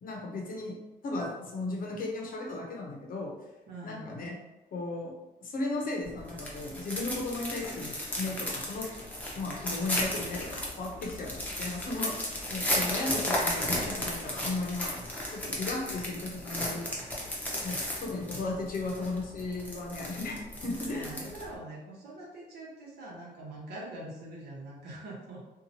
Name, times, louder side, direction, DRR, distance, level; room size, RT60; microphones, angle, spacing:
voice 1, 0.0-3.4 3.8-4.3 4.7-5.1 5.4-8.9 9.3-12.2 12.5-16.9 17.6-21.3, left 2 dB, 60° left, -1 dB, 0.7 m, -35 dB
voice 2, 3.7-4.2 20.9-25.4, right 1 dB, 80° right, -4 dB, 0.9 m, -43 dB
sound 1, 6.0-21.5, left 1 dB, 10° left, 0.7 m, -35 dB
2.8 x 2.3 x 2.7 m, 1.0 s
cardioid pair, 120°, 17 cm